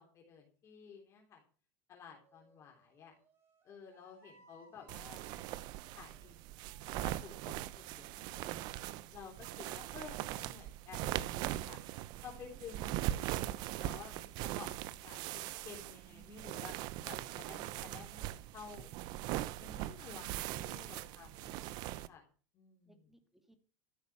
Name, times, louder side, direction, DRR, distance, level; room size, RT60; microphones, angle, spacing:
voice 1, 0.0-1.4 1.9-3.1 3.6-6.3 7.0-8.5 9.1-11.8 12.2-18.9 19.6-22.2 22.5-23.0, left 6 dB, 35° left, 0 dB, 3.6 m, -53 dB
sound 1, 2.1-7.4, right 1 dB, 25° right, 6.5 m, -66 dB
voice 2, 4.3-4.8 22.8-23.6, right 1 dB, 5° right, 8 dB, 2.1 m, -70 dB
sound 2, 4.9-22.1, right 14 dB, 55° right, 0.8 m, -41 dB
14.0 x 6.5 x 8.7 m, 0.39 s
supercardioid pair, 140°, 9 cm